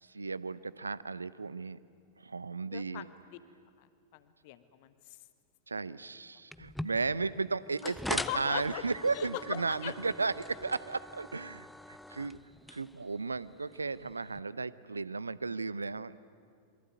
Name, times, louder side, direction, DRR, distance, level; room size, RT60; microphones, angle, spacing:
voice 1, 0.0-1.8 2.2-3.1 5.7-12.4 12.7-16.2, right 4 dB, 80° right, 18 dB, 0.7 m, -35 dB
voice 2, 2.7-3.1 3.8-3.9 4.1-4.9 7.8-8.8 9.1-9.9, left 14 dB, 50° left, 12 dB, 1.3 m, -40 dB
sound 1, 6.5-14.4, left 1 dB, ahead, 0.8 m, -43 dB
27.0 x 22.5 x 9.4 m, 2.2 s
figure-of-eight pair, 90°, 0 cm